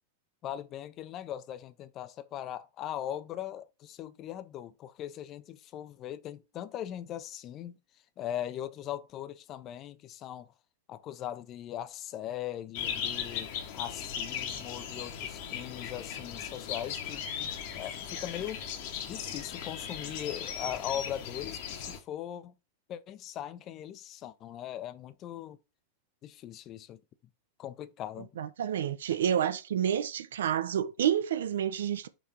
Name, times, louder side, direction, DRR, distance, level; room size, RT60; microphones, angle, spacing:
voice 1, 0.4-7.8 8.2-10.5 10.9-13.5 13.7-18.6 19.1-22.5 22.9-25.6 26.2-27.0 27.6-28.3, left 11 dB, 35° left, 0.5 m, -40 dB
sound 1, 12.7-22.0, left 8 dB, 50° left, 1.1 m, -38 dB
voice 2, 28.4-32.1, right 9 dB, 60° right, 0.6 m, -29 dB
6.0 x 3.5 x 4.4 m
figure-of-eight pair, 90°, 0 cm